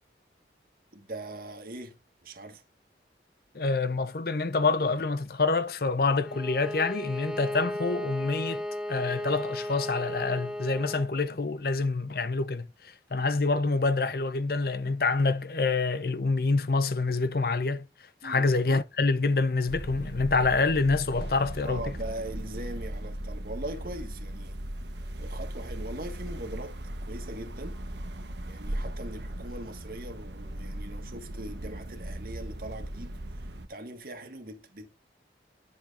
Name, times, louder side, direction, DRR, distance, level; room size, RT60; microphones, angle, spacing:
voice 1, 0.9-2.0 2.2-2.6 18.2-18.5 21.6-24.6 25.2-26.8 27.1-27.8 28.4-34.9, right 1 dB, 55° right, 1.7 m, -41 dB
voice 2, 3.5-17.9 18.2-21.8, left 3 dB, 55° left, 0.7 m, -27 dB
Bowed string instrument, 6.2-11.1, left 1 dB, 5° right, 0.9 m, -35 dB
sound 1, 19.7-33.7, right 1 dB, 75° right, 1.1 m, -38 dB
10.5 x 7.3 x 2.5 m
head